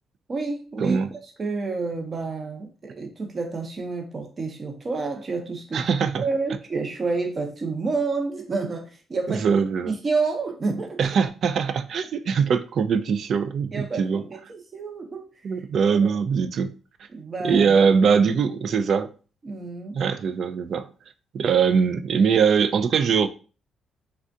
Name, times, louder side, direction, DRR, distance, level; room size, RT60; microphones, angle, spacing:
voice 1, 0.3-1.0 1.4-5.9 6.2-9.6 9.9-11.1 13.7-15.2 15.8-16.2 17.1-17.8 19.4-20.0, right 4 dB, 35° right, 0.7 m, -29 dB
voice 2, 5.7-6.2 9.3-9.9 11.0-14.2 15.4-16.7 17.4-19.1 19.9-20.9 21.3-23.3, right 6 dB, 60° right, 0.3 m, -22 dB
3.3 x 2.4 x 2.6 m
cardioid pair, 90°, 0 cm